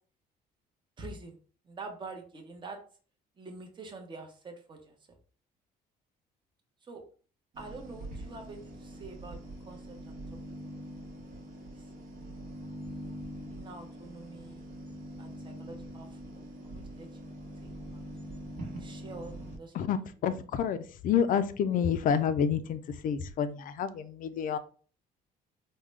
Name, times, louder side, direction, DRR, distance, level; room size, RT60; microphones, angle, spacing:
voice 1, 1.0-1.4 1.6-2.8 3.4-5.0 6.8-7.0 7.6-9.4 9.7-10.2 10.6-11.1 11.7-11.9 13.5-14.7 15.2-17.3 17.6-18.0 18.8-19.9, right 3 dB, 30° right, 3 dB, 0.8 m, -46 dB
sound 1, 7.5-19.6, right 1 dB, 55° right, 1.0 m, -43 dB
voice 2, 19.7-20.8 21.0-24.6, left 7 dB, 55° left, 12 dB, 0.4 m, -29 dB
3.6 x 2.2 x 3.2 m, 0.41 s
cardioid pair, 110°, 17 cm